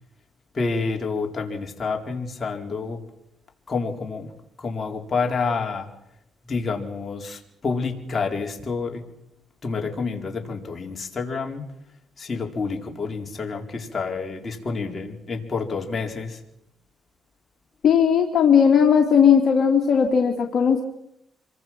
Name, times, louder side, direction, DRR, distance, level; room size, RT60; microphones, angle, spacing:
voice 1, 0.5-3.0 3.7-4.3 4.6-5.9 6.5-9.0 9.6-11.6 12.2-16.4, left 4 dB, 35° left, 2 dB, 4.4 m, -28 dB
voice 2, 17.8-20.8, left 7 dB, 55° left, 2 dB, 2.9 m, -17 dB
27.0 x 24.0 x 6.1 m, 0.80 s
cardioid pair, 90°, 0 cm